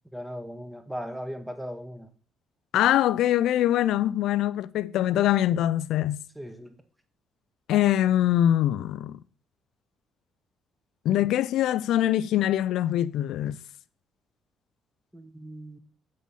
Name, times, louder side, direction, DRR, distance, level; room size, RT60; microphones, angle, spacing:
voice 1, 0.1-2.1 6.4-6.8 15.1-15.8, equal, 5° right, 0.8 m, -38 dB
voice 2, 2.7-6.2 7.7-9.2 11.1-13.6, left 12 dB, 80° left, 0.3 m, -23 dB
7.5 x 3.8 x 5.5 m
cardioid pair, 100°, 0 cm